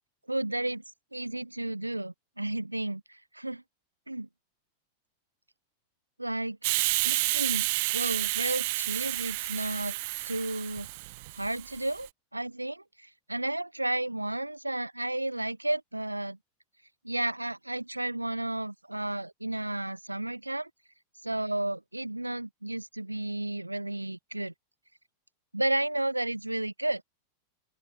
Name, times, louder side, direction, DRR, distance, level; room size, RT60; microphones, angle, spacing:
voice 1, 0.3-0.8 1.1-3.6 4.1-4.3 6.2-6.6 7.0-7.7 7.9-9.9 10.2-10.9 11.3-16.4 17.0-20.7 21.2-24.5 25.5-27.0, right 1 dB, 85° right, 1.1 m, -32 dB
Hiss, 6.6-12.0, right 23 dB, 50° right, 1.5 m, -30 dB
open air
figure-of-eight pair, 90°, 0 cm